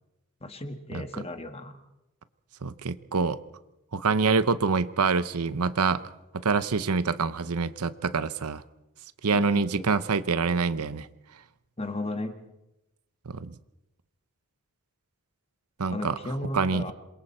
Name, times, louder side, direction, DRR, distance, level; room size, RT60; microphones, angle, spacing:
voice 1, 0.4-1.8 9.3-9.9 11.8-12.3 15.9-16.9, left 1 dB, 25° left, 7 dB, 1.6 m, -34 dB
voice 2, 2.6-3.4 3.9-6.0 6.4-8.6 9.2-11.1 13.3-13.5 15.8-16.1 16.5-16.8, right 4 dB, 85° right, 14 dB, 0.8 m, -26 dB
27.5 x 22.0 x 4.4 m, 0.92 s
head